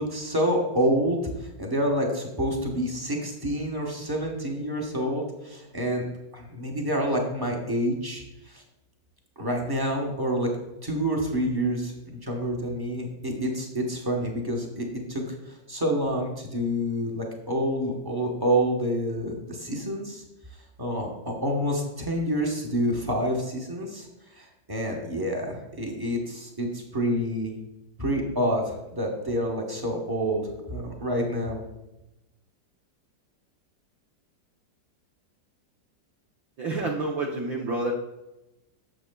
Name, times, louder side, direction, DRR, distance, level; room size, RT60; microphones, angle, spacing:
voice 1, 0.0-6.0 6.3-8.6 9.4-10.5 10.8-20.2 20.8-24.1 24.3-27.5 28.0-31.6, equal, 20° right, 0 dB, 0.6 m, -28 dB
voice 2, 36.6-37.9, right 2 dB, 65° right, -1 dB, 1.0 m, -28 dB
8.9 x 7.0 x 2.2 m, 0.97 s
omnidirectional pair, 2.0 m